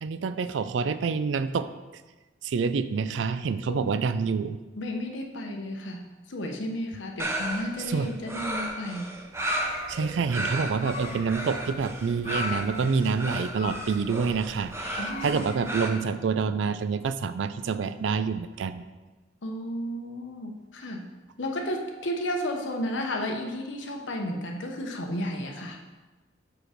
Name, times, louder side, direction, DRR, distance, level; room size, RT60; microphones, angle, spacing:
voice 1, 0.0-1.7 2.4-4.6 7.9-8.1 9.9-18.8, right 5 dB, 70° right, 13 dB, 0.4 m, -27 dB
voice 2, 4.7-6.0 6.3-9.1 15.0-15.5 15.8-16.0 19.4-21.1 21.4-25.8, left 1 dB, 75° left, 3 dB, 0.9 m, -33 dB
sound 1, 7.2-15.9, right 1 dB, 15° right, 0.5 m, -34 dB
sound 2, 9.3-16.0, left 3 dB, 35° left, 0.7 m, -38 dB
6.2 x 4.8 x 5.0 m, 1.2 s
head